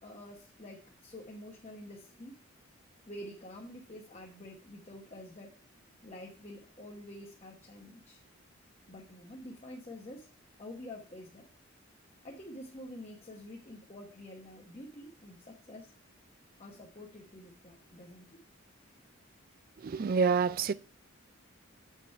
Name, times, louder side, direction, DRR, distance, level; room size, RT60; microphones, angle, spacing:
voice 1, 0.0-2.4 3.1-5.5 6.0-8.2 8.9-10.3 10.6-11.5 12.2-15.9 16.6-18.4, left 1 dB, 30° left, 1.1 m, -48 dB
voice 2, 19.8-20.7, right 5 dB, 45° right, 0.3 m, -27 dB
7.5 x 5.1 x 4.5 m
head